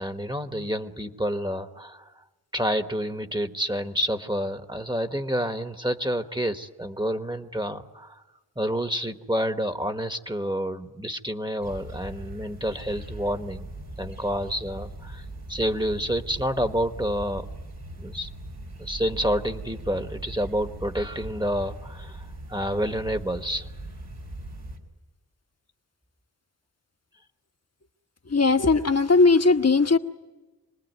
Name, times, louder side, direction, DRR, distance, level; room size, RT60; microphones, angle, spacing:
voice 1, 0.0-2.1 2.5-8.2 8.6-13.7 14.0-15.2 15.5-17.5 18.0-18.3 18.8-23.7, equal, 10° right, 7 dB, 1.3 m, -29 dB
sound 1, 11.6-24.8, right 1 dB, 85° right, 4.2 m, -40 dB
voice 2, 28.3-30.0, left 3 dB, 40° left, 8 dB, 1.2 m, -19 dB
27.0 x 20.5 x 9.3 m, 1.2 s
wide cardioid pair, 65°, 38 cm